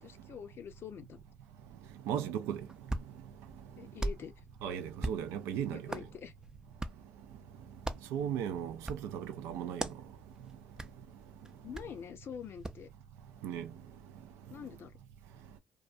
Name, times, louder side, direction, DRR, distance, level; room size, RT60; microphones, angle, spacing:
voice 1, 0.0-1.2 3.8-4.4 5.7-6.3 11.6-12.9 14.5-15.0, left 8 dB, 60° left, 0.5 m, -46 dB
voice 2, 2.1-2.6 4.6-5.8 8.1-9.9 13.4-13.7, right 9 dB, 85° right, 0.4 m, -36 dB
Hands, 2.5-12.9, right 1 dB, 15° right, 0.4 m, -43 dB
2.3 x 2.3 x 2.4 m
supercardioid pair, 55°, 4 cm